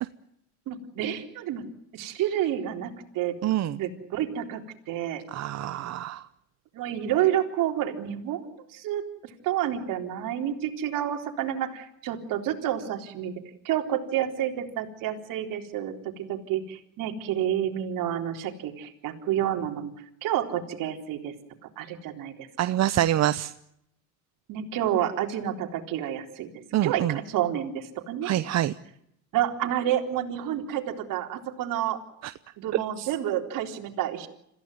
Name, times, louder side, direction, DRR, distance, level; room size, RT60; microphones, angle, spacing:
voice 1, 0.7-1.6 1.9-3.4 3.8-4.6 4.9-5.2 6.7-9.0 9.4-13.3 13.6-19.9 20.2-21.3 21.8-22.8 24.5-26.5 26.8-28.3 29.3-32.0 32.6-34.3, right 11 dB, 65° right, 4 dB, 4.0 m, -29 dB
voice 2, 3.4-3.8 5.3-6.2 22.6-23.5 26.7-27.2 28.2-28.7 32.2-32.3 33.0-33.1, right 13 dB, 45° right, 12 dB, 0.9 m, -26 dB
26.5 x 15.5 x 9.4 m, 0.77 s
cardioid pair, 115°, 35 cm